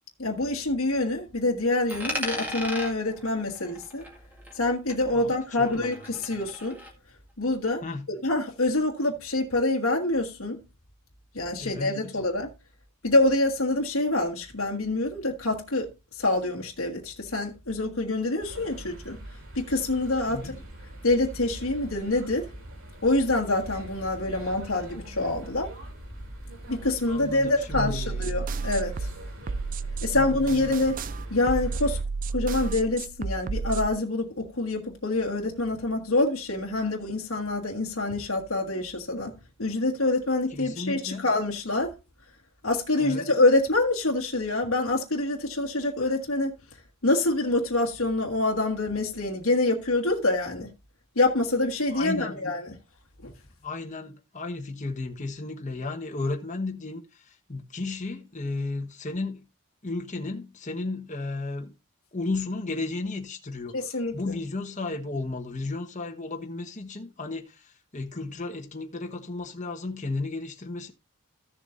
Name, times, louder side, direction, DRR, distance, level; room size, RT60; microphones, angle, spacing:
voice 1, 0.2-4.0 4.5-6.8 7.4-7.8 8.1-10.6 11.3-12.5 13.0-19.2 19.5-20.6 21.0-22.5 23.0-25.7 26.7-29.1 30.0-31.0 31.3-32.0 32.3-39.3 39.6-41.9 42.6-46.6 47.0-50.7 51.1-52.7 53.2-53.3 63.7-64.3, left 2 dB, 80° left, 1.5 m, -26 dB
Coin (dropping), 1.9-4.6 4.9-6.9, left 1 dB, 10° right, 2.0 m, -36 dB
voice 2, 5.6-5.9 7.8-8.0 11.6-12.1 20.3-20.6 27.1-28.3 30.1-30.3 40.5-41.2 43.0-43.3 51.9-52.4 53.6-59.4 59.8-61.7 62.1-70.9, left 3 dB, 35° left, 1.2 m, -34 dB
sound 1, 18.4-32.0, right 1 dB, 80° right, 2.6 m, -43 dB
sound 2, 27.7-33.9, right 4 dB, 40° right, 0.4 m, -32 dB
15.0 x 7.1 x 2.6 m
head